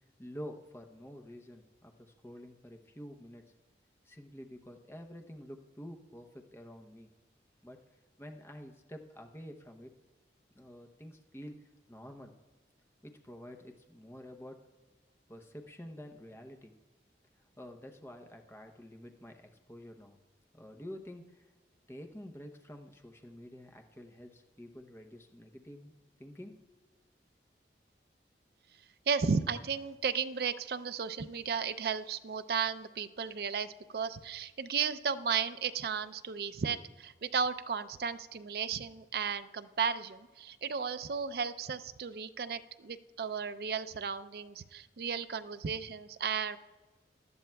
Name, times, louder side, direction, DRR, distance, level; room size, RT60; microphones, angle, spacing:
voice 1, 0.2-3.4 4.0-7.1 7.6-7.8 8.2-9.9 10.5-11.6 11.9-12.3 13.0-14.7 15.3-16.7 17.6-20.2 20.5-21.5 21.9-25.9 26.2-26.8, equal, 15° left, 4 dB, 0.7 m, -48 dB
voice 2, 29.1-46.6, right 6 dB, 60° right, 12 dB, 0.4 m, -34 dB
18.0 x 12.0 x 2.3 m, 1.2 s
head